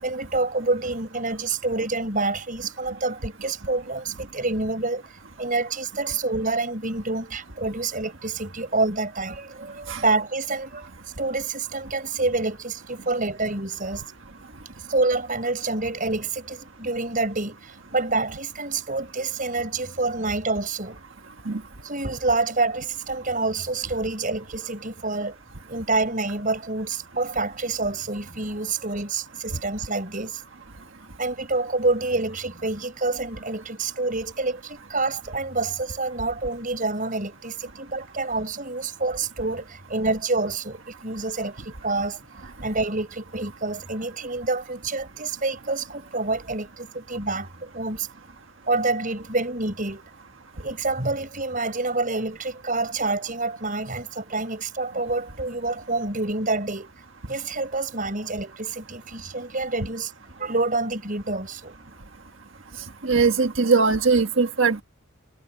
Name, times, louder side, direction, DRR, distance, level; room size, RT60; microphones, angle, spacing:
voice 1, 0.0-5.0 5.4-10.9 11.2-14.0 14.9-21.0 21.8-25.4 25.7-30.4 31.2-48.1 48.7-50.0 50.6-56.9 57.3-60.1 60.4-61.8, right 3 dB, 40° right, 6.3 m, -27 dB
voice 2, 63.0-64.8, right 4 dB, 60° right, 1.7 m, -20 dB
head